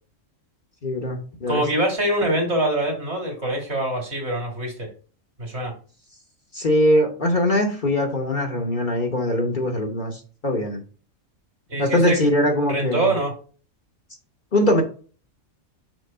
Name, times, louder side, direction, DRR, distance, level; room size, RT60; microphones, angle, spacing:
voice 1, 0.8-1.6 6.5-10.8 11.8-13.1 14.5-14.8, left 1 dB, 40° left, 2 dB, 1.1 m, -21 dB
voice 2, 1.5-4.9 5.4-5.7 11.7-12.2 12.6-13.3, right 1 dB, 55° right, 1 dB, 2.4 m, -24 dB
6.0 x 3.2 x 5.6 m, 0.39 s
omnidirectional pair, 1.4 m